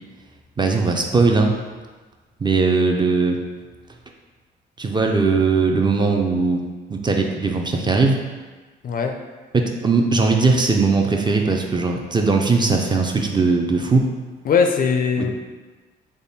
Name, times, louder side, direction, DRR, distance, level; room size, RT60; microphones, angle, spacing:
voice 1, 0.6-1.5 2.4-3.4 4.8-6.6 6.9-8.2 9.5-14.1 15.2-15.3, right 4 dB, 25° right, 2 dB, 0.4 m, -19 dB
voice 2, 8.8-9.2 14.4-15.3, left 6 dB, 45° left, 4 dB, 0.4 m, -19 dB
3.5 x 2.2 x 4.0 m, 1.3 s
cardioid pair, 90°, 20 cm